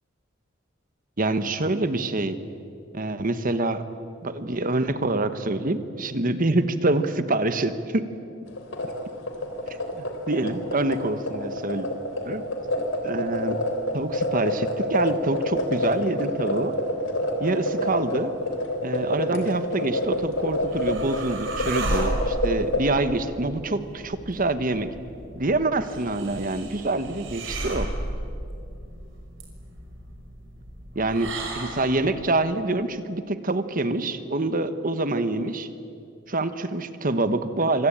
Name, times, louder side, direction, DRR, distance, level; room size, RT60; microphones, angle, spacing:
voice 1, 1.2-2.4 2.9-3.8 4.2-8.1 10.3-11.9 12.2-12.4 13.0-13.6 13.9-16.7 17.4-18.3 18.8-24.9 25.3-27.9 30.9-35.7 36.3-37.9, right 2 dB, 45° right, 10 dB, 1.3 m, -26 dB
sound 1, 8.5-22.8, left 1 dB, 80° left, 3.8 m, -28 dB
sound 2, 20.1-32.1, right 1 dB, 70° right, 5.7 m, -34 dB
26.5 x 25.0 x 8.9 m, 2.5 s
head